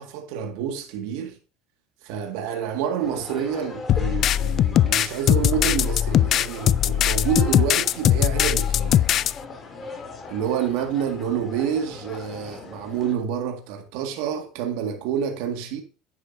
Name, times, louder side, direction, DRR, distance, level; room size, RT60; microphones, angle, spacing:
voice 1, 0.0-1.4 2.0-9.1 10.3-15.8, right 8 dB, 70° right, 2.0 m, -28 dB
sound 1, 3.0-13.2, left 4 dB, 25° left, 3.0 m, -40 dB
sound 2, 3.9-9.3, left 11 dB, 45° left, 0.4 m, -20 dB
9.9 x 9.6 x 2.7 m
supercardioid pair, 120°, 0 cm